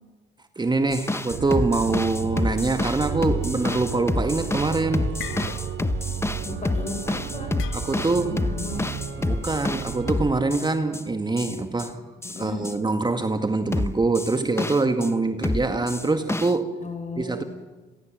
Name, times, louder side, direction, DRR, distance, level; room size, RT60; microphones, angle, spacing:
voice 1, 0.6-5.1 7.7-8.4 9.2-12.0 12.4-16.7 17.2-17.4, right 3 dB, 20° right, 7 dB, 2.0 m, -24 dB
Drum Mix, 0.9-11.0 11.4-11.9 12.2-12.7 13.7-15.1 15.4-16.5, left 2 dB, 15° left, 1.0 m, -28 dB
Organ, 1.3-10.5, right 7 dB, 80° right, 3.8 m, -33 dB
sound 1, 5.2-6.0 6.3-6.6 7.6-8.3, left 12 dB, 85° left, 1.3 m, -40 dB
voice 2, 6.4-7.6 8.2-8.8 12.2-12.7 16.8-17.5, left 3 dB, 40° left, 7 dB, 6.0 m, -35 dB
29.5 x 22.5 x 7.7 m, 1.2 s
cardioid pair, 90°, 20 cm